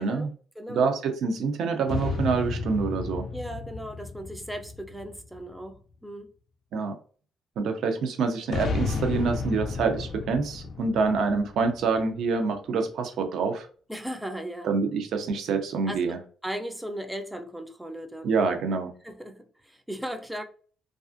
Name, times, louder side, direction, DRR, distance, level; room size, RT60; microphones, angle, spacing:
voice 1, 0.0-0.9 3.3-6.3 13.9-14.7 15.9-16.1 16.4-18.5 19.0-20.4, equal, 5° right, 6 dB, 0.4 m, -37 dB
voice 2, 0.7-3.2 6.7-7.0 7.6-13.7 14.6-16.2 18.2-18.9, right 4 dB, 75° right, 6 dB, 0.5 m, -26 dB
sound 1, 1.9-5.5 8.5-12.3, left 4 dB, 65° left, 0.4 m, -33 dB
2.4 x 2.4 x 2.4 m, 0.42 s
cardioid pair, 90°, 0 cm